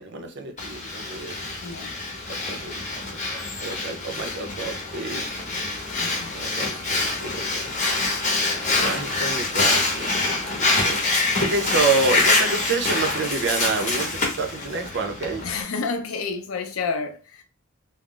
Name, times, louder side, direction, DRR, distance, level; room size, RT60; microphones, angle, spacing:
voice 1, 0.0-1.4 2.3-5.3 6.3-7.8 8.8-10.1 10.4-11.0 11.4-15.4, right 3 dB, 55° right, 0.6 m, -28 dB
Breathing, 0.6-15.6, left 3 dB, 35° left, 0.8 m, -25 dB
voice 2, 1.6-2.0 5.4-6.8 15.4-17.4, left 4 dB, 85° left, 0.5 m, -31 dB
2.4 x 2.0 x 3.7 m
head